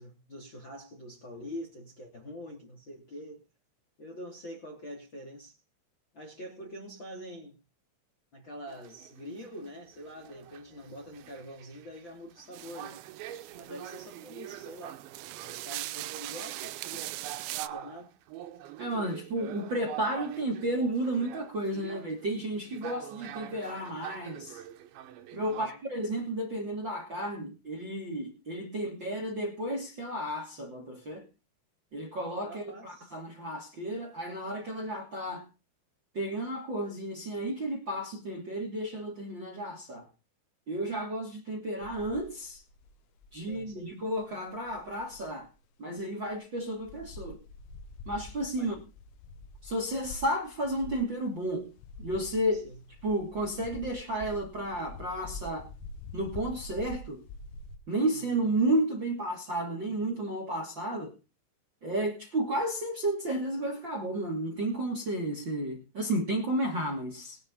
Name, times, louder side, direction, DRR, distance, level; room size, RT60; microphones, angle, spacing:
voice 1, 0.0-3.4 4.0-5.6 6.1-7.6 8.3-13.0 13.5-15.0 15.4-17.1 17.6-18.1 25.5-25.8 32.4-33.1 43.5-43.9 48.6-48.7 52.5-52.8 58.0-58.3, equal, 30° left, 2.5 m, -45 dB
sound 1, 8.7-25.7, right 12 dB, 70° right, 3.5 m, -45 dB
sound 2, 12.5-17.7, right 16 dB, 90° right, 2.3 m, -41 dB
voice 2, 18.8-24.6 25.3-31.2 31.9-35.4 36.1-40.1 40.7-42.6 43.3-45.5 45.8-47.4 48.1-48.8 49.6-51.7 52.0-52.6 53.0-55.7 56.1-57.2 57.9-61.1 61.8-67.4, right 1 dB, 30° right, 2.5 m, -32 dB
sound 3, 41.8-45.5 46.0-46.1 46.3-46.4 46.7-57.8, left 2 dB, 85° left, 3.9 m, -46 dB
21.5 x 9.4 x 4.0 m
omnidirectional pair, 5.8 m